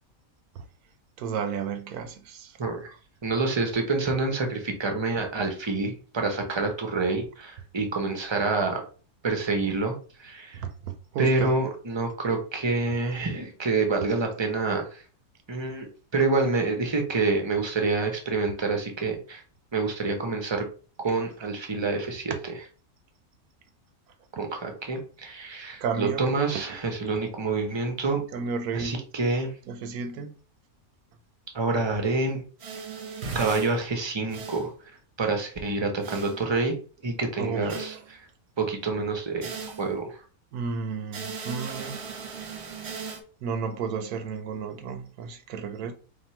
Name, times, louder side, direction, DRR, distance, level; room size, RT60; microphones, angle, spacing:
voice 1, 1.2-2.6 10.5-11.6 14.1-14.3 22.3-22.4 25.8-26.8 27.1-27.2 28.3-29.0 29.7-30.3 37.4-38.0 40.5-42.0 43.4-45.9, right 5 dB, 85° right, 1.2 m, -33 dB
voice 2, 3.2-8.8 9.2-10.6 11.2-15.0 15.5-15.9 16.1-19.4 19.7-20.6 21.0-22.3 24.3-28.2 28.7-29.5 31.5-32.4 33.3-34.7 35.2-36.7 37.0-38.2 38.6-40.2, right 3 dB, 25° right, 0.6 m, -27 dB
sound 1, 32.6-33.7 34.3-34.7 36.0-36.4 37.7-38.0 39.4-40.0 41.1-43.2, right 5 dB, 55° right, 0.9 m, -37 dB
3.6 x 2.7 x 4.3 m
omnidirectional pair, 1.5 m